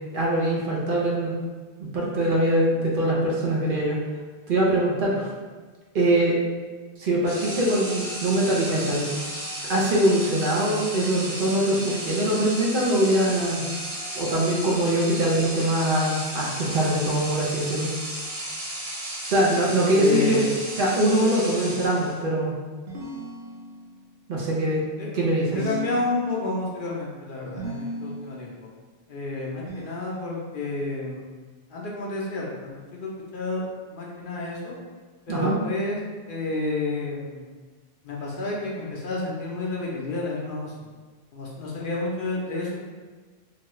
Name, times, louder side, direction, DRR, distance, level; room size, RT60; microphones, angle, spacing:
voice 1, 0.1-1.3 1.9-4.0 4.5-5.3 5.9-6.4 7.0-9.1 9.7-13.6 14.2-17.9 19.3-20.4 20.8-22.6 24.3-24.8 25.1-25.5 35.3-35.5, right 1 dB, 60° right, -4 dB, 0.7 m, -23 dB
sound 1, 7.2-22.3, right 1 dB, 30° right, 0.7 m, -34 dB
voice 2, 19.9-20.5 25.0-25.1 25.5-28.7 29.1-31.3 31.7-33.6 33.9-34.8 35.3-36.0 36.3-37.5 38.0-40.9 41.3-42.9, left 3 dB, 60° left, -3 dB, 0.7 m, -30 dB
sound 2, 22.9-24.1 25.5-26.7 27.6-28.4 29.7-30.6, right 1 dB, 85° right, 0.9 m, -37 dB
2.9 x 2.3 x 3.0 m, 1.4 s
omnidirectional pair, 1.1 m